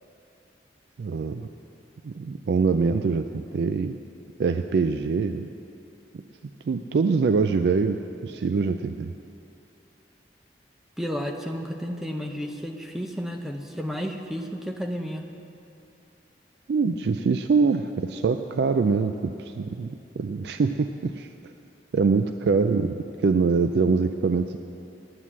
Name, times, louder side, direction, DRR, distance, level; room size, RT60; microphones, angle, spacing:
voice 1, 1.0-1.5 2.0-4.0 4.4-5.5 6.1-6.2 6.7-9.1 16.7-21.5 21.9-24.6, right 4 dB, 70° right, 8 dB, 0.3 m, -24 dB
voice 2, 11.0-15.3, equal, ahead, 3 dB, 0.6 m, -32 dB
9.8 x 9.2 x 7.4 m, 2.7 s
head